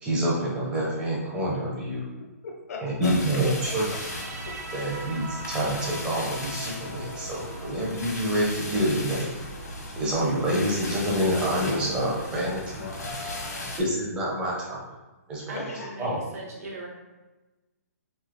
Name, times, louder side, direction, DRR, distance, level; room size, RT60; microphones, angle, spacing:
voice 1, 0.0-2.0 2.8-3.9 4.7-9.3 10.0-12.9 13.8-14.8 15.3-15.7 16.0-16.2, right 1 dB, 10° right, -5 dB, 0.6 m, -27 dB
voice 2, 2.4-3.4 4.4-4.5 12.8-13.8 15.5-16.0, left 4 dB, 60° left, 0 dB, 0.5 m, -38 dB
sound 1, 3.0-13.8, left 1 dB, 90° left, 1.1 m, -37 dB
sound 2, 3.4-10.5, right 2 dB, 85° right, 0.4 m, -43 dB
voice 3, 15.5-16.9, right 2 dB, 65° right, -3 dB, 0.9 m, -39 dB
3.1 x 2.8 x 2.5 m, 1.1 s
hypercardioid pair, 160°, 9 cm